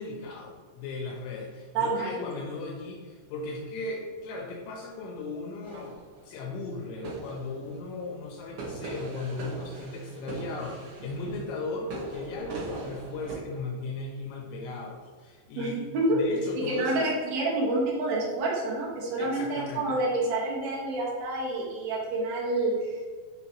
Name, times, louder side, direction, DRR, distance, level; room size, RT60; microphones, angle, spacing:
voice 1, 0.0-6.0 6.2-15.8 16.1-17.1 19.2-20.0, left 3 dB, 85° left, -1 dB, 2.9 m, -36 dB
voice 2, 1.7-2.2 15.5-16.2 16.5-23.0, right 2 dB, 80° right, -5 dB, 1.5 m, -28 dB
sound 1, 5.6-6.4 7.0-8.1 8.5-13.3, right 2 dB, 65° right, 3.0 m, -41 dB
9.1 x 3.6 x 2.9 m, 1.5 s
omnidirectional pair, 5.3 m